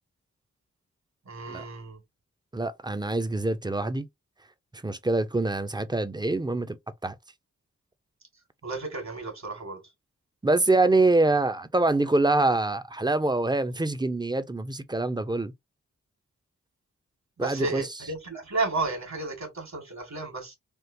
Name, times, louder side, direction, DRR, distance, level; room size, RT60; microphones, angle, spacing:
voice 1, 1.3-2.0 8.6-9.8 17.4-20.5, right 3 dB, 65° right, 2.0 m, -33 dB
voice 2, 2.5-4.1 4.7-6.8 7.0-7.1 10.4-15.5 17.4-17.9, right 2 dB, 15° right, 0.6 m, -25 dB
3.6 x 2.4 x 2.7 m
cardioid pair, 45°, 30 cm